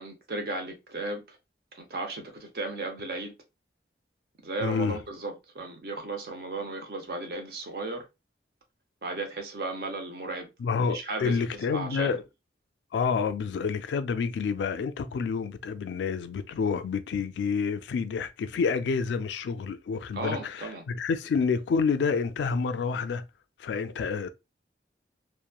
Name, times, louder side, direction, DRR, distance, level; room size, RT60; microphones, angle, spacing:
voice 1, 0.0-1.4 1.8-3.3 4.4-8.1 9.0-10.5 10.9-12.2 20.1-20.8, right 2 dB, 55° right, 0.6 m, -35 dB
voice 2, 4.6-5.0 10.6-12.2 12.9-23.2 23.6-24.3, left 5 dB, 80° left, 0.3 m, -28 dB
2.9 x 2.1 x 2.2 m
head